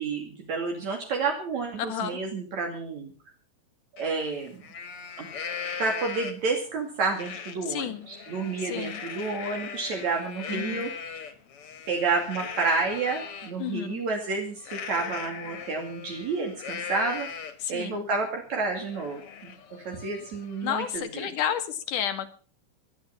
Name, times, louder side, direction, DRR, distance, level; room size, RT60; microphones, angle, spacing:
voice 1, 0.0-3.1 4.0-4.6 5.2-5.3 5.8-10.9 11.9-17.3 17.7-19.5 19.9-21.3, right 4 dB, 65° right, 2 dB, 3.7 m, -30 dB
voice 2, 1.9-2.2 7.7-8.1 8.6-9.0 10.5-10.9 13.6-14.0 17.6-18.1 20.6-22.3, left 10 dB, 85° left, 9 dB, 3.2 m, -31 dB
Livestock farm animals working animals, 4.0-4.1 4.5-6.6 7.1-7.6 8.0-13.5 14.6-17.7 18.2-18.3 18.6-21.0, left 6 dB, 50° left, 2.5 m, -39 dB
19.5 x 11.5 x 5.8 m, 0.39 s
omnidirectional pair, 3.5 m